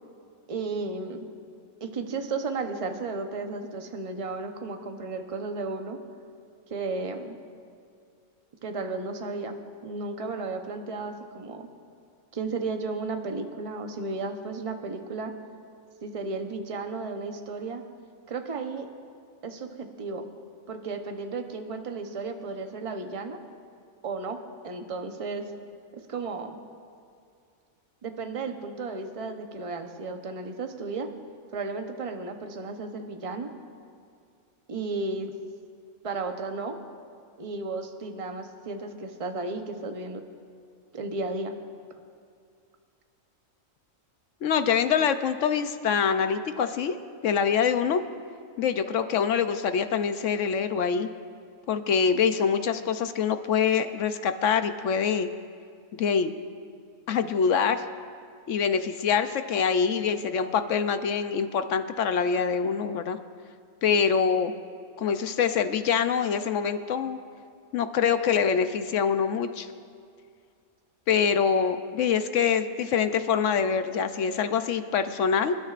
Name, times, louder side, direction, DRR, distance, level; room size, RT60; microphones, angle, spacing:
voice 1, 0.5-1.3 1.8-6.0 6.7-7.4 8.6-9.5 9.8-11.7 12.3-15.3 16.0-17.8 18.3-18.9 19.4-20.3 20.7-23.4 24.0-24.4 24.6-25.5 26.1-26.6 28.0-31.1 31.5-33.5 34.7-35.3 36.0-36.7 37.4-40.2 40.9-41.5, right 3 dB, 30° right, 5 dB, 0.8 m, -34 dB
voice 2, 44.4-47.0 47.2-48.0 48.6-51.1 51.7-55.3 56.0-56.3 57.1-57.8 58.5-63.2 63.8-64.5 65.0-67.2 67.7-69.7 71.1-75.6, left 6 dB, 70° left, 9 dB, 0.9 m, -25 dB
26.5 x 12.0 x 2.5 m, 2.3 s
omnidirectional pair, 1.4 m